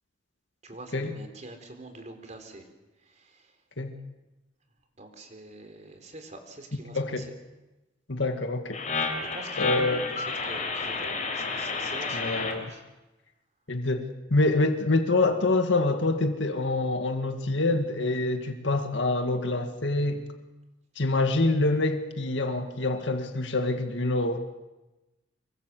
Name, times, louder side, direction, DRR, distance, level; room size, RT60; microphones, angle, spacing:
voice 1, 0.6-2.7 3.1-3.4 5.0-7.3 9.2-12.8, right 2 dB, 40° right, 6 dB, 4.1 m, -45 dB
voice 2, 8.1-8.8 9.6-10.0 12.1-12.7 13.7-20.2 21.0-24.4, left 2 dB, 75° left, 6 dB, 2.0 m, -26 dB
sound 1, 8.7-12.5, left 4 dB, 40° left, 4.6 m, -31 dB
26.0 x 23.0 x 7.8 m, 1.0 s
head